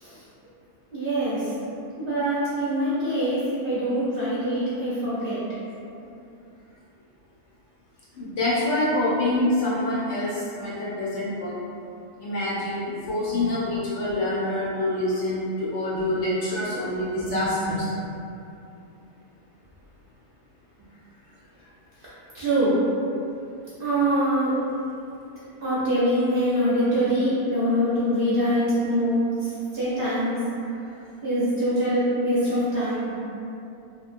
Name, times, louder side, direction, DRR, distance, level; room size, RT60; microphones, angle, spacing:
voice 1, 0.9-1.5 2.0-5.4 17.3-17.4 22.3-22.8 23.8-24.5 25.6-30.4 31.2-33.1, equal, 55° right, -11 dB, 0.7 m, -24 dB
voice 2, 8.2-11.6 12.2-17.8, left 1 dB, 65° left, -8 dB, 0.8 m, -26 dB
2.9 x 2.3 x 2.5 m, 2.6 s
omnidirectional pair, 1.5 m